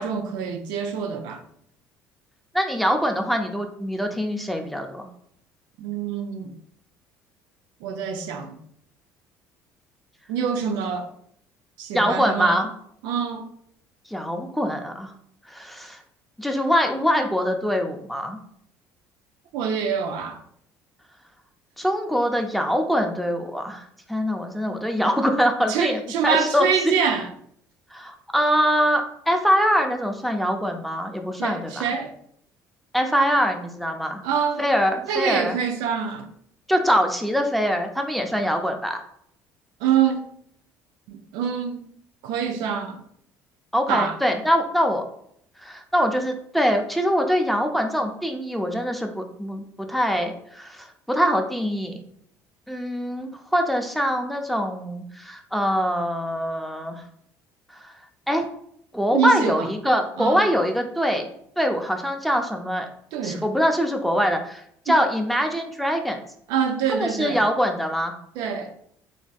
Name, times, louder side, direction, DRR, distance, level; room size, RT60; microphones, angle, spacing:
voice 1, 0.0-1.4 5.8-6.5 7.8-8.6 10.3-11.1 11.8-12.6 13.0-13.5 19.5-20.4 25.7-27.3 31.4-32.1 34.2-34.6 35.1-36.3 39.8-40.2 41.1-41.9 42.2-43.0 43.9-44.2 59.1-59.7 60.2-60.5 63.1-63.4 66.5-67.4 68.4-68.7, right 7 dB, 75° right, 0.4 m, -25 dB
voice 2, 2.5-5.1 11.9-12.7 14.1-15.1 15.5-16.0 16.4-18.4 21.8-26.7 27.0-27.1 27.9-31.9 32.9-34.2 34.6-35.6 36.7-39.0 43.7-45.0 45.6-52.0 52.7-57.0 57.8-57.9 58.3-58.4 58.9-61.3 61.6-62.9 63.2-66.2 66.9-68.1, equal, ahead, 0.4 m, -23 dB
3.3 x 2.5 x 2.3 m
supercardioid pair, 75°, 7 cm